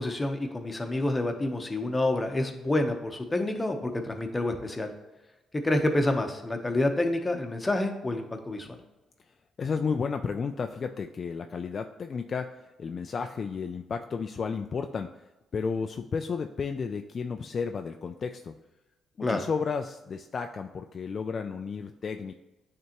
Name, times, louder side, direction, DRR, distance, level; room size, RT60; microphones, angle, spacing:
voice 1, 0.0-4.9 5.6-8.8 19.2-19.4, left 1 dB, 20° left, 5 dB, 0.9 m, -28 dB
voice 2, 9.6-12.5 12.8-15.1 15.5-18.5 19.2-22.3, left 5 dB, 45° left, 6 dB, 0.3 m, -32 dB
9.5 x 3.4 x 2.9 m, 1.0 s
cardioid pair, 90°, 0 cm